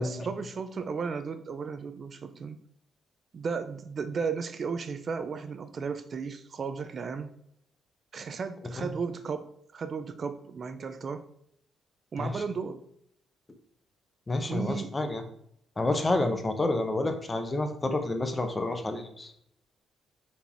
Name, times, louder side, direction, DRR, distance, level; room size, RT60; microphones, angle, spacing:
voice 1, 0.0-2.6 3.3-7.3 8.1-11.2 12.1-12.8 14.5-15.0, right 5 dB, 45° right, 10 dB, 0.5 m, -34 dB
voice 2, 14.3-15.2 15.8-19.3, left 2 dB, 25° left, 7 dB, 0.9 m, -29 dB
5.4 x 4.3 x 4.5 m, 0.72 s
cardioid pair, 90°, 0 cm